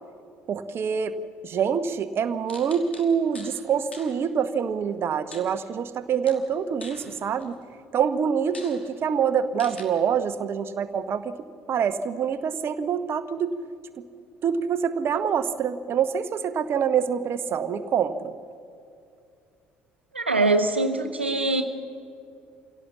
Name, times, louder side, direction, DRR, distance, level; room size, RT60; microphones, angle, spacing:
voice 1, 0.5-1.2 1.4-7.6 7.9-11.3 11.7-13.5 14.4-18.4, right 7 dB, 45° right, 11 dB, 1.0 m, -25 dB
sound 1, 2.5-3.6 3.9-4.1 5.3-6.0 6.3-7.6 8.1-8.2 8.5-8.8 9.6-9.8, left 3 dB, 85° left, 1.8 m, -44 dB
voice 2, 20.1-21.6, right 2 dB, 85° right, 6 dB, 0.8 m, -23 dB
25.5 x 17.0 x 7.2 m, 2.5 s
figure-of-eight pair, 55°, 6 cm